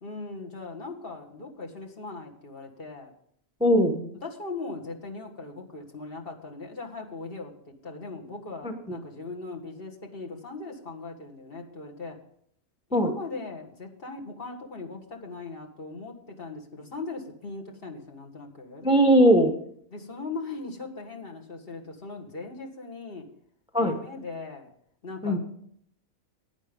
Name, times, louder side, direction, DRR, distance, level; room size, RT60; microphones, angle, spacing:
voice 1, 0.0-3.1 4.2-12.2 12.9-18.9 19.9-23.3 23.8-24.7 25.0-25.4, left 3 dB, 45° left, 1 dB, 1.8 m, -39 dB
voice 2, 3.6-4.1 8.6-9.0 12.9-13.1 18.8-19.5 23.7-23.9 25.2-25.4, equal, 5° right, 5 dB, 0.8 m, -20 dB
11.5 x 9.7 x 5.2 m, 0.66 s
omnidirectional pair, 1.4 m